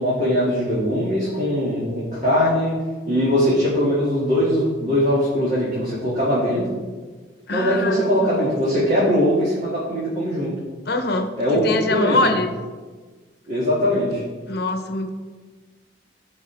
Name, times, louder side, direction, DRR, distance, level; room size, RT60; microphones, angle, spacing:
voice 1, 0.0-2.7 3.1-6.6 7.5-10.5 11.4-12.3 13.5-14.2, equal, 45° right, -8 dB, 2.6 m, -21 dB
voice 2, 7.5-8.5 10.9-12.6 14.5-15.1, left 2 dB, 60° left, 6 dB, 0.9 m, -24 dB
16.0 x 5.4 x 3.5 m, 1.4 s
head